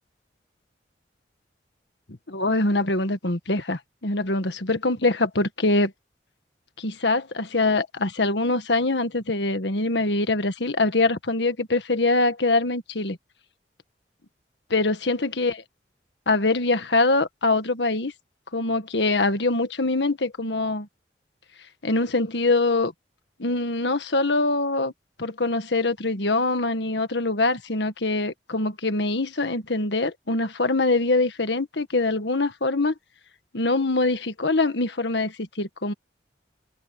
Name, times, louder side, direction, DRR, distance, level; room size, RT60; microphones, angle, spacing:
voice 1, 2.3-5.9 6.8-13.2 14.7-15.6 16.3-18.1 18.5-20.9 21.8-22.9 23.4-24.9 25.2-32.9 33.5-35.9, left 2 dB, 75° left, 1.6 m, -23 dB
head